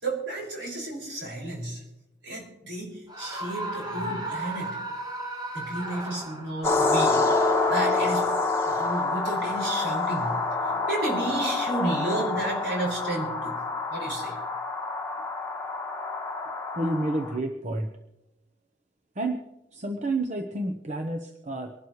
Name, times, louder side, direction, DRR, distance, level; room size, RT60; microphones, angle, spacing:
voice 1, 0.0-1.8 2.2-4.8 5.5-8.3 8.6-10.4 10.7-13.6 13.9-14.4, right 2 dB, 70° right, -2 dB, 5.6 m, -32 dB
Screaming, 3.1-6.8, right 1 dB, 20° right, 1.5 m, -35 dB
sound 1, 6.6-17.4, left 3 dB, 15° left, 1.3 m, -27 dB
voice 2, 16.7-17.9 19.2-19.4 19.7-21.7, right 2 dB, 40° right, 4 dB, 0.9 m, -29 dB
24.5 x 12.0 x 3.2 m, 0.92 s
head